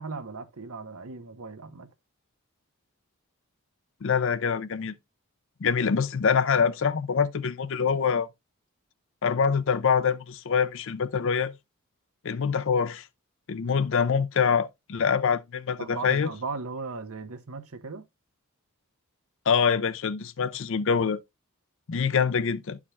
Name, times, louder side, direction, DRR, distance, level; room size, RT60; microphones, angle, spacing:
voice 1, 0.0-1.9 15.8-18.0, right 4 dB, 80° right, 1.0 m, -37 dB
voice 2, 4.0-4.9 5.6-8.3 9.2-11.5 12.2-13.0 13.5-16.3 19.5-21.2 21.9-22.8, left 6 dB, 60° left, 0.5 m, -25 dB
11.5 x 4.8 x 2.3 m
head